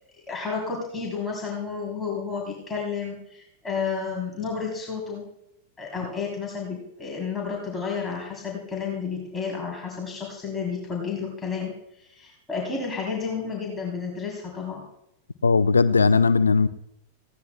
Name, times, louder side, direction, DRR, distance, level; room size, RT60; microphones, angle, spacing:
voice 1, 0.3-5.2 5.8-14.8, left 5 dB, 15° left, 3.2 m, -31 dB
voice 2, 15.4-16.7, left 4 dB, 75° left, 0.6 m, -18 dB
18.5 x 16.0 x 2.2 m
figure-of-eight pair, 90°, 0 cm